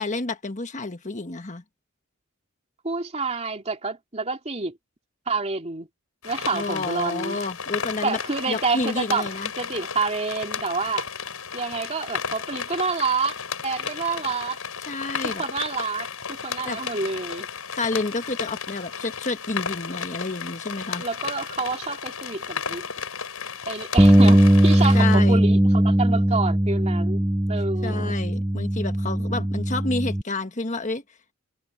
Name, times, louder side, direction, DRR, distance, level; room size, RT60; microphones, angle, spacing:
voice 1, 0.0-1.6 6.5-8.2 8.5-9.5 14.9-15.4 16.6-16.8 17.7-21.0 24.9-25.4 27.8-31.0, left 3 dB, 35° left, 1.5 m, -29 dB
voice 2, 2.8-4.8 5.3-5.9 6.2-7.4 8.0-9.3 9.6-11.1 11.5-13.4 13.6-14.6 15.2-17.5 21.0-22.9 23.7-25.6 25.8-28.2, right 4 dB, 30° right, 2.9 m, -28 dB
sound 1, 6.2-25.2, left 6 dB, 75° left, 6.0 m, -34 dB
Bass guitar, 24.0-30.2, equal, 10° right, 0.8 m, -19 dB
head